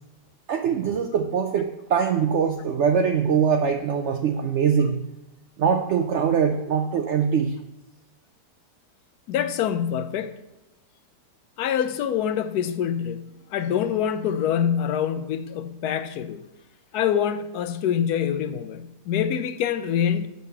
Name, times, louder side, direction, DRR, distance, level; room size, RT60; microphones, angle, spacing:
voice 1, 0.5-5.0 5.6-7.5, right 7 dB, 70° right, 0.7 m, -22 dB
voice 2, 9.3-10.3 11.6-16.4 16.9-20.3, left 9 dB, 75° left, 1.1 m, -25 dB
6.7 x 5.3 x 6.6 m
omnidirectional pair, 1.8 m